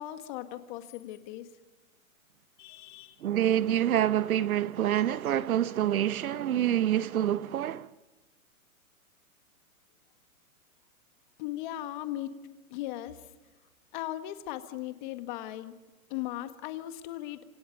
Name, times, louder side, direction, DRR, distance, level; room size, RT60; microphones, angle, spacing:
voice 1, 0.0-1.6 2.6-3.2 11.4-12.3 12.7-13.3 13.9-15.8 16.1-17.5, left 14 dB, 35° left, 1.7 m, -38 dB
voice 2, 3.2-7.9, right 11 dB, 75° right, 1.1 m, -27 dB
26.5 x 26.0 x 5.4 m
hypercardioid pair, 160°, 43 cm